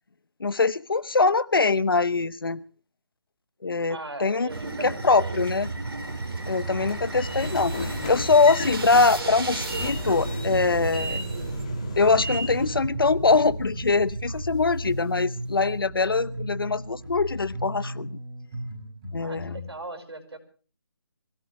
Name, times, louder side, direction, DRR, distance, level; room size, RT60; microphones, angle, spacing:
voice 1, 0.4-2.6 3.6-4.5 4.8-5.7 6.5-11.2 12.0-18.2 19.1-19.6, left 4 dB, 60° left, 16 dB, 1.0 m, -23 dB
voice 2, 3.9-5.4 19.2-20.4, right 2 dB, 85° right, 7 dB, 5.3 m, -39 dB
sound 1, 4.5-15.1, right 2 dB, 60° right, 4.8 m, -33 dB
Train / Sliding door, 6.3-12.8, left 2 dB, 15° left, 1.5 m, -36 dB
sound 2, 14.3-19.7, equal, 10° right, 7.0 m, -35 dB
26.0 x 16.5 x 3.2 m, 0.39 s
hypercardioid pair, 180°, 14 cm